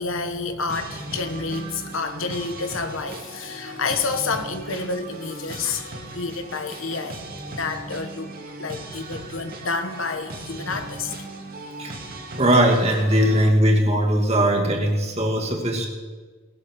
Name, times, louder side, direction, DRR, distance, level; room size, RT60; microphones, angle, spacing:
voice 1, 0.0-8.3 8.6-11.2, left 4 dB, 75° left, 8 dB, 1.3 m, -29 dB
sound 1, 0.7-13.5, right 2 dB, 45° right, 2.2 m, -38 dB
voice 2, 12.4-15.9, right 1 dB, 30° right, -1 dB, 2.5 m, -19 dB
19.5 x 13.0 x 4.7 m, 1.4 s
head